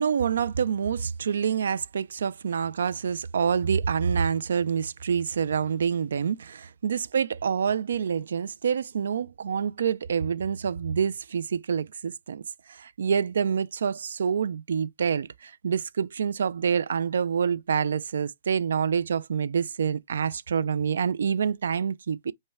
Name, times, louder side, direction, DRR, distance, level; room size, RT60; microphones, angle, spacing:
voice 1, 0.0-12.4 12.7-22.3, right 7 dB, 75° right, 0.3 m, -27 dB
5.4 x 2.1 x 3.4 m
hypercardioid pair, 175°, 0 cm